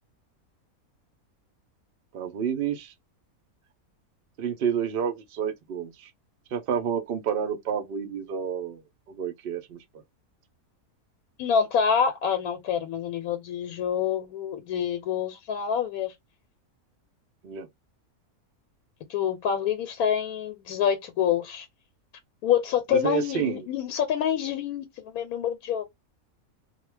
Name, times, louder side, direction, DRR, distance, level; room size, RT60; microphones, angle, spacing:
voice 1, 2.1-2.9 4.4-6.1 6.5-9.8 17.4-17.7 22.9-23.7, right 7 dB, 55° right, 0.7 m, -29 dB
voice 2, 11.4-16.1 19.1-21.7 22.4-25.8, left 8 dB, 90° left, 1.1 m, -27 dB
2.4 x 2.1 x 3.2 m
omnidirectional pair, 1.5 m